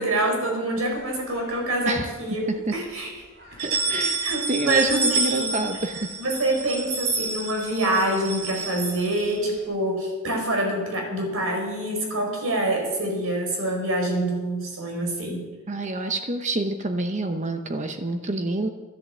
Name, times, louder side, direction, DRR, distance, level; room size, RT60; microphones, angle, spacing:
voice 1, 0.0-2.5 2.7-3.1 4.1-5.5 6.2-15.4, right 1 dB, 90° right, 1 dB, 5.2 m, -26 dB
sound 1, 0.9-1.8 2.3-2.4 2.7-2.8 3.4-9.6, right 4 dB, 55° right, 4.3 m, -30 dB
voice 2, 3.6-4.2 4.5-6.1 15.7-18.7, right 2 dB, 35° right, 6 dB, 0.8 m, -27 dB
13.5 x 11.0 x 7.5 m, 1.3 s
head